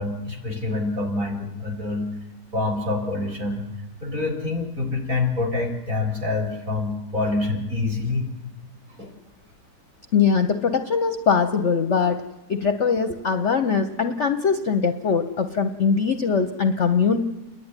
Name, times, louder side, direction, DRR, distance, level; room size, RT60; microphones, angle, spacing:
voice 1, 0.0-2.1 2.5-3.7 4.0-8.2 9.0-9.1, left 3 dB, 45° right, 2 dB, 4.4 m, -26 dB
voice 2, 10.1-12.2 12.5-17.2, left 6 dB, 50° left, 7 dB, 0.9 m, -21 dB
29.5 x 11.0 x 9.7 m, 1.1 s
omnidirectional pair, 2.0 m